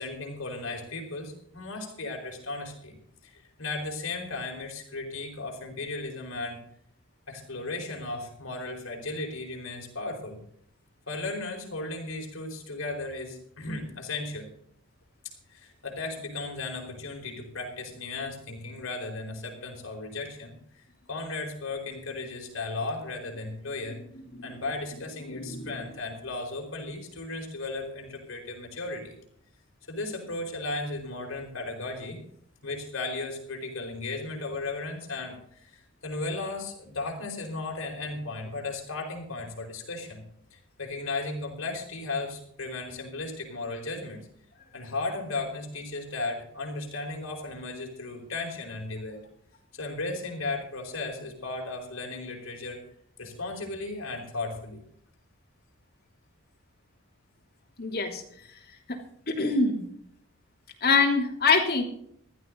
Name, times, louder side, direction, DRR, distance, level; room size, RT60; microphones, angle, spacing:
voice 1, 0.0-2.9 3.2-6.6 7.3-10.4 11.1-14.5 15.5-20.6 21.1-24.0 24.4-29.1 29.9-32.2 32.6-40.2 40.5-44.2 44.7-49.2 49.7-52.8 53.2-54.8, left 3 dB, 70° left, 1 dB, 4.6 m, -35 dB
voice 2, 25.2-25.8 57.8-58.2 58.9-59.0 59.3-59.8 60.8-61.8, left 4 dB, 50° left, 1 dB, 3.1 m, -25 dB
15.5 x 13.0 x 3.9 m, 0.67 s
head